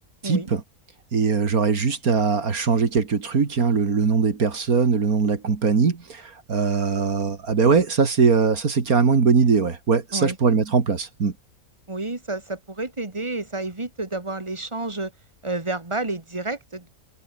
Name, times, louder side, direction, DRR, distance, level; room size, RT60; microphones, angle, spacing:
voice 1, 0.2-0.6 1.1-11.3, right 5 dB, 80° right, 2.6 m, -21 dB
voice 2, 11.9-15.1 15.4-16.9, right 2 dB, 20° right, 2.4 m, -30 dB
omnidirectional pair, 1.5 m